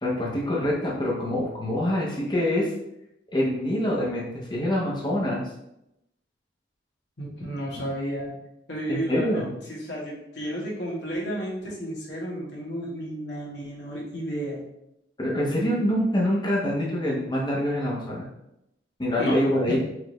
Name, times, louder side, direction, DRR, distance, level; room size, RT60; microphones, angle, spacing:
voice 1, 0.0-2.7 3.3-5.4 8.9-9.5 15.2-18.3 19.0-19.8, left 1 dB, 25° left, -4 dB, 0.9 m, -25 dB
voice 2, 7.2-8.3 8.7-9.4 9.7-14.6 19.2-19.4 19.7-19.8, equal, 70° left, -4 dB, 1.3 m, -32 dB
4.8 x 2.5 x 3.1 m, 0.85 s
head